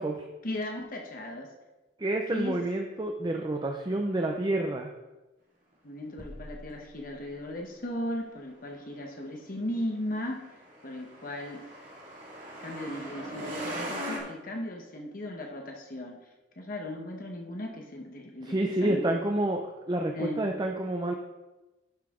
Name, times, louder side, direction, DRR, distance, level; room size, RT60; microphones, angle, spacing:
voice 1, 0.4-1.5 2.3-2.6 5.8-10.4 10.8-11.6 12.6-16.2 16.6-19.0 20.1-20.4, left 1 dB, 50° left, 1 dB, 1.1 m, -36 dB
voice 2, 2.0-4.9 18.5-21.1, right 1 dB, 25° right, 3 dB, 0.5 m, -29 dB
sound 1, 6.2-7.8, equal, 25° left, 1.2 m, -47 dB
Truck, 10.1-14.2, right 1 dB, 45° right, 2.4 m, -39 dB
11.5 x 5.7 x 3.7 m, 1.1 s
head